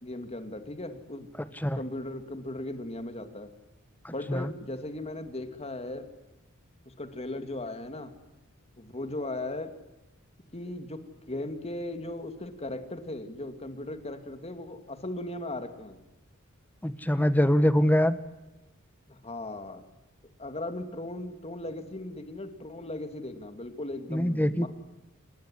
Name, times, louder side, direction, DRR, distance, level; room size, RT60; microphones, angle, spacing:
voice 1, 0.0-1.3 1.7-3.5 4.1-6.1 6.9-8.1 8.8-9.7 10.5-16.0 19.1-19.8 20.4-24.7, left 1 dB, 30° left, 8 dB, 2.7 m, -37 dB
voice 2, 4.0-4.5 16.8-18.2 24.1-24.7, equal, 10° left, 12 dB, 1.3 m, -24 dB
27.0 x 20.5 x 9.9 m, 1.0 s
head